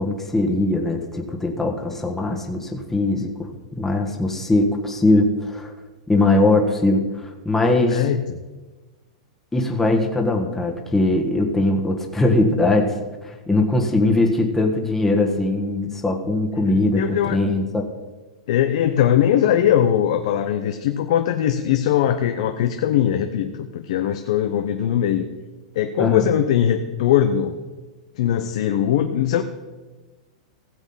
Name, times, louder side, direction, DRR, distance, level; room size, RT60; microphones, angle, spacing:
voice 1, 0.0-5.7 6.1-8.1 9.5-12.9 13.2-17.8 26.0-26.3, left 2 dB, 10° left, 1 dB, 1.5 m, -21 dB
voice 2, 7.9-8.2 16.7-17.4 18.5-25.3 25.7-27.5 28.2-29.4, left 10 dB, 65° left, 8 dB, 0.8 m, -20 dB
16.0 x 7.2 x 5.6 m, 1.2 s
hypercardioid pair, 110°, 4 cm